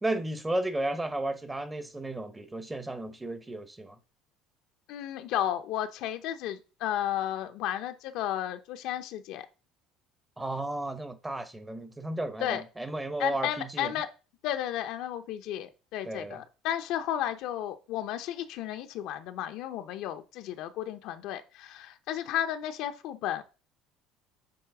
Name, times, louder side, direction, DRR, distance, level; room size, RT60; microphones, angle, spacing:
voice 1, 0.0-4.0 10.4-14.0 16.0-16.4, right 1 dB, 15° right, 1.0 m, -33 dB
voice 2, 4.9-9.5 12.4-12.6 13.2-14.1 14.4-23.4, left 11 dB, 70° left, 0.7 m, -33 dB
7.8 x 3.2 x 4.8 m
supercardioid pair, 100°, 0 cm